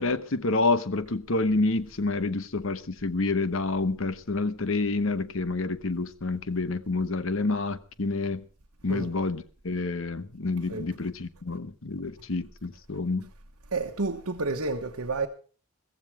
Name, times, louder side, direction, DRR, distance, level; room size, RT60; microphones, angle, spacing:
voice 1, 0.0-8.4 8.8-13.3, left 3 dB, 65° left, 0.9 m, -28 dB
voice 2, 13.7-15.3, right 3 dB, 80° right, 1.2 m, -30 dB
15.0 x 15.0 x 4.7 m
head